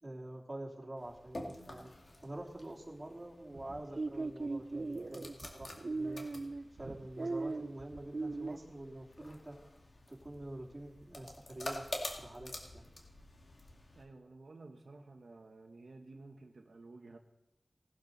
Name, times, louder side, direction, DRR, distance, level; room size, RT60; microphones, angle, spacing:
voice 1, 0.0-1.9 2.2-6.2 6.8-9.5 10.1-11.9 12.2-12.8, right 1 dB, 30° right, -3 dB, 3.2 m, -46 dB
sound 1, 1.0-14.0, left 1 dB, 60° left, 2.3 m, -48 dB
sound 2, 3.5-8.6, right 3 dB, 60° right, 0.6 m, -39 dB
voice 2, 13.9-17.2, right 3 dB, 85° right, 3 dB, 1.1 m, -53 dB
19.0 x 12.0 x 4.0 m, 0.91 s
wide cardioid pair, 80°, 0 cm